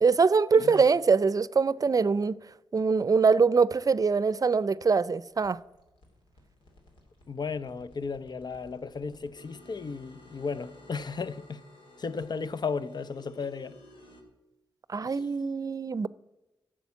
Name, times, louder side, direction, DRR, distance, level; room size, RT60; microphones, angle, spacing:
voice 1, 0.0-2.4 2.7-5.6 14.9-16.1, right 5 dB, 45° right, 0.5 m, -23 dB
voice 2, 0.5-0.8 7.3-11.6 12.0-13.8 15.0-15.1, left 5 dB, 55° left, 0.7 m, -35 dB
sound 1, 5.2-14.2, left 1 dB, 85° left, 2.8 m, -55 dB
11.0 x 7.6 x 8.3 m
cardioid pair, 50°, 8 cm